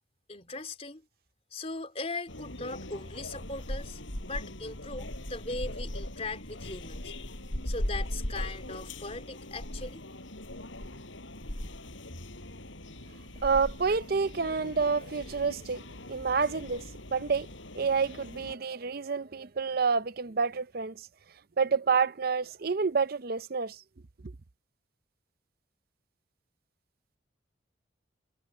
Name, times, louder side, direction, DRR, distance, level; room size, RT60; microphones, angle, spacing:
voice 1, 0.3-1.0 1.5-7.1 7.7-10.0, left 3 dB, 30° left, 4.0 m, -39 dB
sound 1, 2.3-18.6, left 1 dB, 75° left, 6.1 m, -39 dB
voice 2, 13.4-15.8 16.1-17.5 17.7-21.1 21.6-23.8, right 5 dB, 50° right, 0.6 m, -28 dB
head